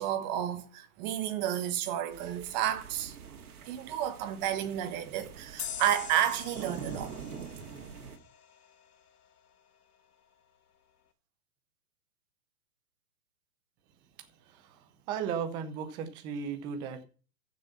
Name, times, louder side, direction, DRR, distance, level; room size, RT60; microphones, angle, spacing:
voice 1, 0.0-3.2 3.7-7.1 7.6-7.7, right 11 dB, 25° right, 1.3 m, -31 dB
sound 1, 2.1-8.2, right 6 dB, 65° right, 2.5 m, -45 dB
sound 2, 5.6-8.9, left 8 dB, 70° left, 1.9 m, -44 dB
voice 2, 14.5-17.0, right 7 dB, 10° right, 0.6 m, -36 dB
14.5 x 6.6 x 5.7 m
hypercardioid pair, 150°, 46 cm